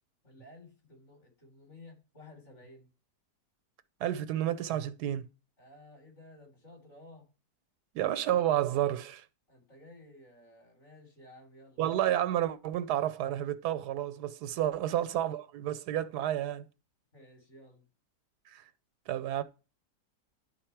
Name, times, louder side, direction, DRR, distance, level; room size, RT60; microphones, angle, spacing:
voice 1, 0.2-2.9 5.6-7.3 9.5-11.8 14.5-14.8 17.1-17.9, left 2 dB, 45° left, 3.9 m, -54 dB
voice 2, 4.0-5.3 7.9-9.2 11.8-16.6 18.5-18.6 19.1-19.4, right 12 dB, 80° right, 1.2 m, -30 dB
11.0 x 4.2 x 4.5 m
omnidirectional pair, 1.7 m